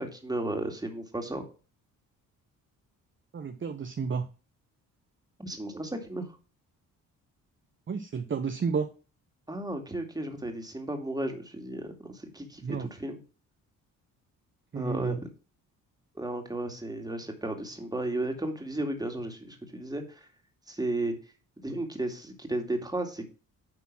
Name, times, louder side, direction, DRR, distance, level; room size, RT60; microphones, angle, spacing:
voice 1, 0.0-1.4 5.4-6.4 9.5-13.2 14.7-15.2 16.1-20.3 20.7-21.1 21.6-23.3, right 1 dB, 10° right, 4 dB, 2.4 m, -34 dB
voice 2, 3.3-4.2 7.9-8.9 12.6-12.9 14.7-15.2, right 5 dB, 35° right, 6 dB, 1.0 m, -31 dB
9.7 x 3.7 x 6.1 m, 0.35 s
cardioid pair, 75°, 35 cm